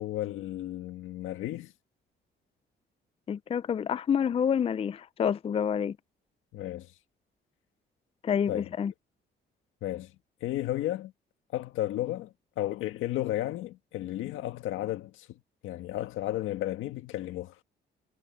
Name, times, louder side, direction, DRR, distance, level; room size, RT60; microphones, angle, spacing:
voice 1, 0.0-1.7 6.5-6.9 8.5-8.7 9.8-10.1 10.4-11.1 11.5-15.3 15.6-17.6, left 14 dB, 90° left, 1.6 m, -33 dB
voice 2, 3.3-6.0 8.2-8.9, left 8 dB, 30° left, 0.4 m, -28 dB
cardioid pair, 90°, 20 cm